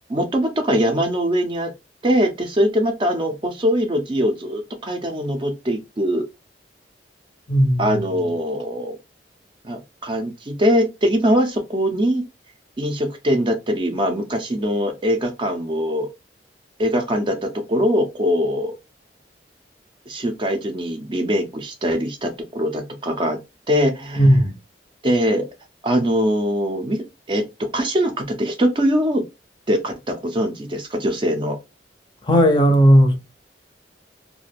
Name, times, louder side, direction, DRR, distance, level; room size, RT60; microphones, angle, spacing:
voice 1, 0.1-1.7 2.0-6.2 7.8-9.0 9.6-12.2 12.8-16.1 16.8-18.7 20.1-23.4 23.7-24.3 25.0-25.5 25.8-27.4 27.7-29.2 29.7-31.6, equal, 30° right, 0.5 m, -22 dB
voice 2, 7.5-8.0 24.2-24.5 32.3-33.2, equal, 25° left, 0.5 m, -15 dB
2.3 x 2.2 x 3.2 m
head